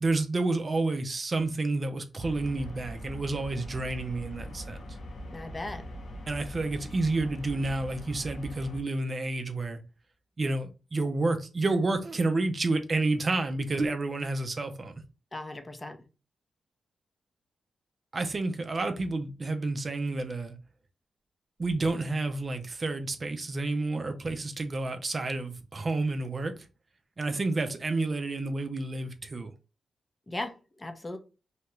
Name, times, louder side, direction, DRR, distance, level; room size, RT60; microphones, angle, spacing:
voice 1, 0.0-4.8 6.3-9.8 10.4-14.9 18.1-20.6 21.6-26.5 27.2-29.5, right 2 dB, 40° right, 0.4 m, -30 dB
sound 1, 2.2-8.8, equal, 70° left, 0.8 m, -42 dB
voice 2, 5.3-5.8 15.3-16.0 30.3-31.2, left 2 dB, 25° left, 0.6 m, -37 dB
2.8 x 2.2 x 3.0 m
cardioid pair, 75°, 0 cm